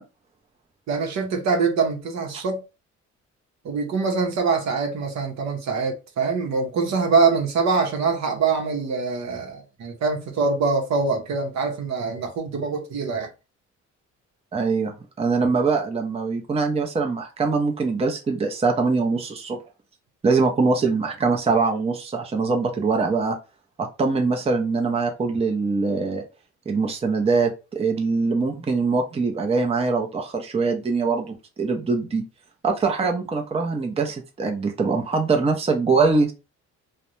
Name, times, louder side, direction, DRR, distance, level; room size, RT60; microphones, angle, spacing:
voice 1, 0.9-2.6 3.6-13.3, right 4 dB, 65° right, 0.8 m, -24 dB
voice 2, 14.5-19.6 20.2-23.4 23.8-26.2 26.7-32.2 32.6-36.3, right 4 dB, 20° right, 0.6 m, -23 dB
2.4 x 2.1 x 3.0 m
cardioid pair, 90°, 30 cm